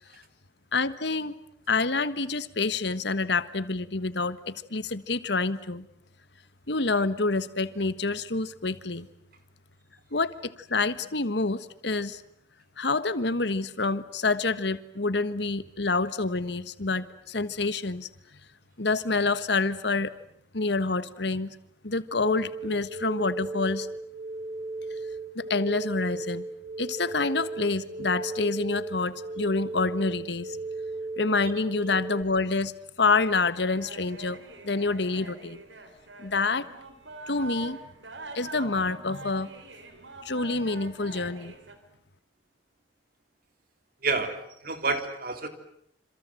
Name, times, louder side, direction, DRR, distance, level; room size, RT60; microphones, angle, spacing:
voice 1, 0.7-1.3 1.7-5.9 6.7-9.1 10.1-12.2 12.8-18.1 18.8-20.1 20.5-21.6 21.8-23.9 25.3-26.4 26.8-30.6 31.2-32.7 33.0-34.4 34.6-35.6 36.2-36.7 37.3-37.8 38.3-39.5 40.2-41.5, left 3 dB, 65° left, 14 dB, 1.4 m, -27 dB
sound 1, 22.2-32.2, right 3 dB, 30° right, 3.3 m, -36 dB
sound 2, 33.2-41.7, right 2 dB, 80° right, 4.2 m, -44 dB
voice 2, 44.0-45.5, right 3 dB, 55° right, 7 dB, 3.6 m, -29 dB
27.5 x 27.0 x 7.8 m, 0.71 s
head